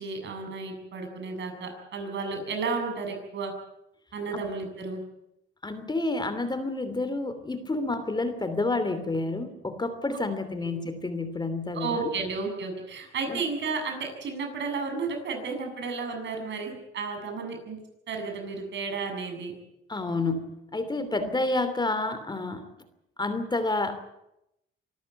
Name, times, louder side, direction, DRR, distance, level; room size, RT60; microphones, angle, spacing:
voice 1, 0.0-3.5 4.1-5.0 11.7-17.8 18.1-19.5 21.2-21.3, right 4 dB, 65° right, 4 dB, 7.3 m, -32 dB
voice 2, 5.6-12.1 13.3-13.4 19.9-22.7 23.2-24.0, left 2 dB, 20° left, 10 dB, 2.9 m, -29 dB
25.0 x 13.5 x 9.1 m, 0.85 s
cardioid pair, 90°, 20 cm